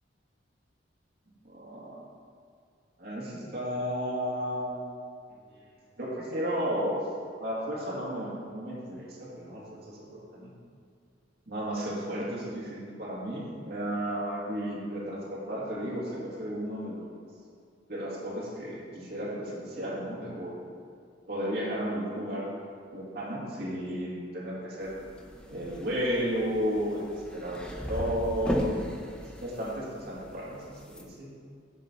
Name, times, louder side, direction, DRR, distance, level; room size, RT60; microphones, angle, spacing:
voice 1, 1.5-2.0 3.0-4.8 5.5-5.6 6.0-7.0 7.4-10.5 11.5-17.1 17.9-20.5 21.3-22.5 22.9-24.9 25.5-28.8 29.4-31.3, equal, 55° right, -6 dB, 2.1 m, -33 dB
sound 1, 24.8-31.0, equal, 5° left, 0.6 m, -37 dB
7.5 x 4.3 x 6.7 m, 2.3 s
head